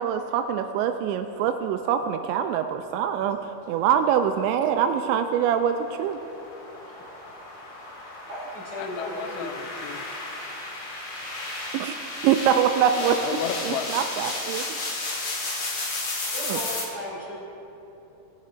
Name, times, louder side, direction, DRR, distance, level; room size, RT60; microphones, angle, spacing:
voice 1, 0.0-3.4 3.7-6.2 11.7-12.0 12.2-13.2 13.6-14.8 16.5-16.6, right 8 dB, 90° right, 7 dB, 2.5 m, -24 dB
sound 1, 4.8-16.8, left 2 dB, 45° left, 2.3 m, -34 dB
voice 2, 8.3-9.8 16.3-17.4, equal, 30° right, -10 dB, 3.3 m, -36 dB
voice 3, 8.8-10.0 13.2-13.9 14.1-14.3, left 7 dB, 80° left, 6 dB, 3.1 m, -33 dB
20.0 x 6.9 x 4.4 m, 3.0 s
omnidirectional pair, 5.7 m